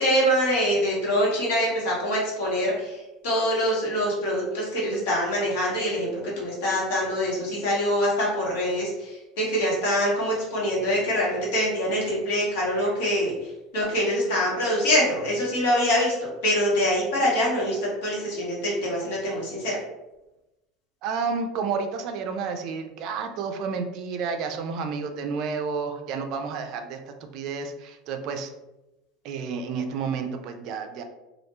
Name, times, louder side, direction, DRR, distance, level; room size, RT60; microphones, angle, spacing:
voice 1, 0.0-13.3 13.7-19.8, equal, 75° left, -4 dB, 1.1 m, -24 dB
voice 2, 21.0-28.5 29.2-31.0, right 5 dB, 60° right, 6 dB, 0.3 m, -30 dB
2.3 x 2.1 x 3.0 m, 0.98 s
hypercardioid pair, 85°, 0 cm